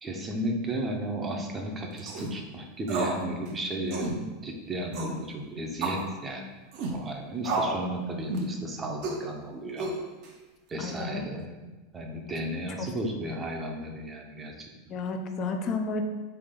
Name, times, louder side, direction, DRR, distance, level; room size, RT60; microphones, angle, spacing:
voice 1, 0.0-6.4 6.9-9.9 10.7-11.5 11.9-14.9, right 1 dB, 20° right, 1 dB, 0.7 m, -34 dB
sound 1, 2.0-2.3 2.9-3.2 3.5-3.6 3.9-4.2 4.9-5.2 5.8-6.1 6.7-7.0 7.4-7.8 8.3-8.5 9.0-9.2 9.8-10.3, right 3 dB, 55° right, 0.8 m, -30 dB
voice 2, 10.8-11.2 12.8-12.9 14.9-16.0, left 4 dB, 40° left, 5 dB, 0.5 m, -31 dB
3.5 x 3.4 x 3.7 m, 1.2 s
hypercardioid pair, 115°, 0 cm